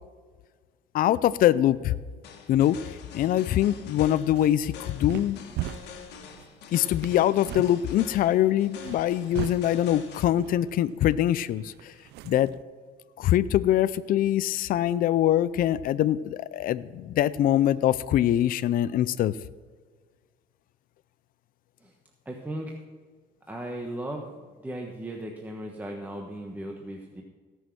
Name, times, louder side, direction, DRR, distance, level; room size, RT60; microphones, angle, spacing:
voice 1, 0.9-1.9 2.5-2.8 3.1-5.4 6.7-11.9 12.2-12.5 13.2-19.4, left 12 dB, 55° left, 16 dB, 0.5 m, -23 dB
sound 1, 2.2-10.2, left 7 dB, 80° left, 1.6 m, -45 dB
sound 2, 4.1-12.6, right 15 dB, 80° right, 0.4 m, -40 dB
voice 2, 22.2-22.8 23.5-24.3 24.6-27.2, right 1 dB, 10° right, 0 dB, 1.2 m, -36 dB
17.0 x 6.3 x 6.2 m, 1.5 s
cardioid pair, 110°, 17 cm